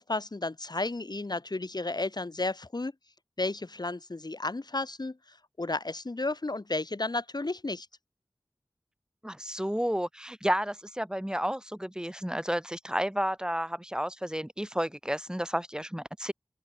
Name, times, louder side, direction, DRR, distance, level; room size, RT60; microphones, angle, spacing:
voice 1, 0.0-2.9 3.4-7.9, left 2 dB, 55° left, 7.0 m, -33 dB
voice 2, 9.2-16.3, equal, 10° right, 5.1 m, -31 dB
open air
wide cardioid pair, 45°, 8 cm